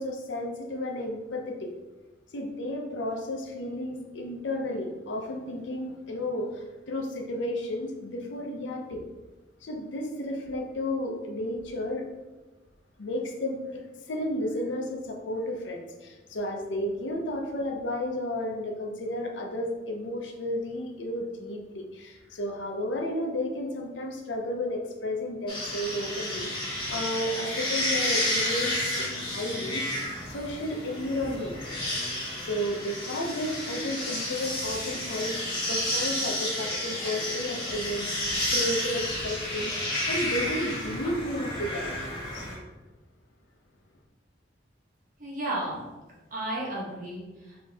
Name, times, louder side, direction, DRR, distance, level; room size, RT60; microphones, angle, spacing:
voice 1, 0.0-1.7 2.3-9.0 9.6-12.1 13.0-13.8 14.1-29.8 30.3-31.7 32.3-35.4 35.7-39.8 40.1-42.5, left 1 dB, 85° left, 2 dB, 0.7 m, -32 dB
sound 1, 25.5-42.5, left 1 dB, 25° left, 1.4 m, -31 dB
voice 2, 45.2-45.8 46.3-47.7, right 1 dB, 50° right, -5 dB, 1.3 m, -33 dB
4.1 x 2.9 x 3.5 m, 1.2 s
head